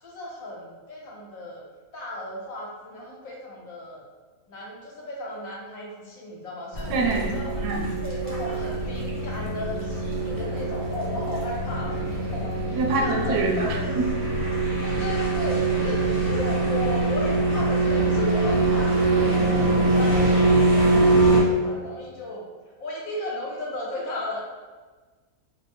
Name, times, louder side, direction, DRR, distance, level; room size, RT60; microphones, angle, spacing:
voice 1, 0.0-1.6 1.9-4.0 4.5-7.5 8.0-13.9 15.0-22.4 22.8-24.4, left 1 dB, 65° left, -3 dB, 1.1 m, -35 dB
sound 1, 6.7-21.4, right 2 dB, 20° right, 0.6 m, -23 dB
voice 2, 6.9-7.3 7.6-7.9 12.7-14.1, right 3 dB, 80° right, 0 dB, 1.1 m, -25 dB
3.9 x 2.1 x 3.4 m, 1.3 s
omnidirectional pair, 1.7 m